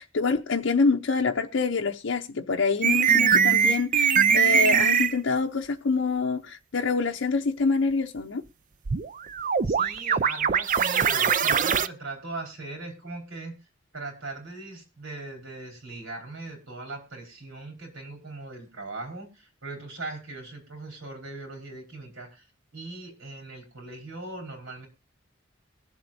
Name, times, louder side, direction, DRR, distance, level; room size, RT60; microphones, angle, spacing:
voice 1, 0.0-8.4, left 4 dB, 70° left, 0.7 m, -26 dB
sound 1, 2.8-5.2 8.9-11.9, right 7 dB, 40° right, 0.5 m, -22 dB
voice 2, 9.6-13.6 13.9-22.4 22.7-24.9, right 2 dB, 85° right, 4.9 m, -39 dB
23.0 x 7.7 x 2.7 m
head